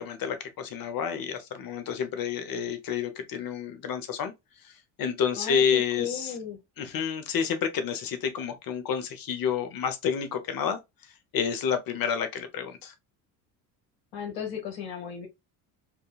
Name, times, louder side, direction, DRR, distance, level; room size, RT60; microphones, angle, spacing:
voice 1, 0.0-4.3 4.6-4.7 5.0-6.3 6.8-10.8 11.3-12.9, left 7 dB, 55° left, 0.9 m, -29 dB
voice 2, 5.4-6.6 14.1-15.3, left 7 dB, 85° left, 1.5 m, -35 dB
3.7 x 2.2 x 2.3 m
supercardioid pair, 75°, 43 cm